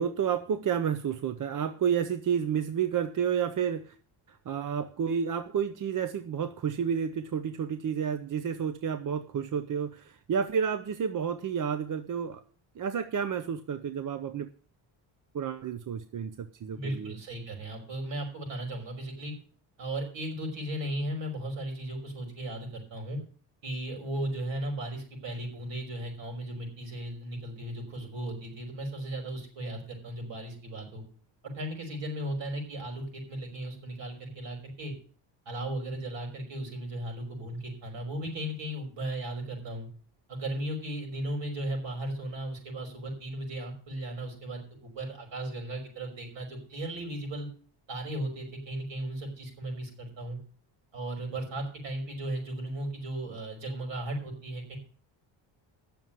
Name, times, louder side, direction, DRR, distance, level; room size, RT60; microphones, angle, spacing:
voice 1, 0.0-3.9 4.3-12.4 12.8-14.5 15.3-17.1, right 7 dB, 40° right, 10 dB, 0.8 m, -30 dB
voice 2, 16.7-19.3 19.8-23.2 23.6-31.0 31.5-34.9 35.5-39.9 40.3-47.5 47.9-50.4 50.9-54.8, right 1 dB, 65° right, 2 dB, 5.6 m, -36 dB
9.5 x 7.0 x 9.0 m, 0.44 s
cardioid pair, 120°, 48 cm